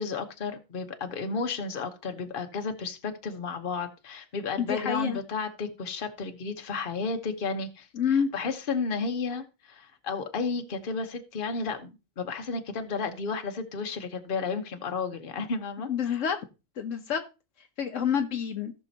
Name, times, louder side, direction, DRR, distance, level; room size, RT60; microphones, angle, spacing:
voice 1, 0.0-16.2, left 4 dB, 40° left, 1.2 m, -33 dB
voice 2, 4.6-5.2 7.9-8.3 15.9-16.4 16.8-17.2 17.8-18.7, left 7 dB, 70° left, 1.2 m, -27 dB
17.0 x 6.2 x 2.8 m
omnidirectional pair, 1.4 m